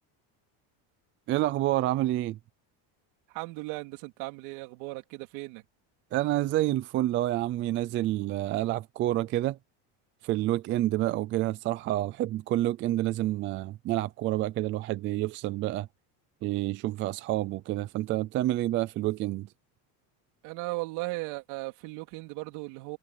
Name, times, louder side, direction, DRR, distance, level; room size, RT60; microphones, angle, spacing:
voice 1, 1.3-2.4 6.1-9.6 10.2-15.9 16.4-19.5, right 15 dB, 30° right, 0.4 m, -28 dB
voice 2, 3.3-5.6 20.4-23.0, right 24 dB, 75° right, 3.7 m, -37 dB
cardioid pair, 180°, 42 cm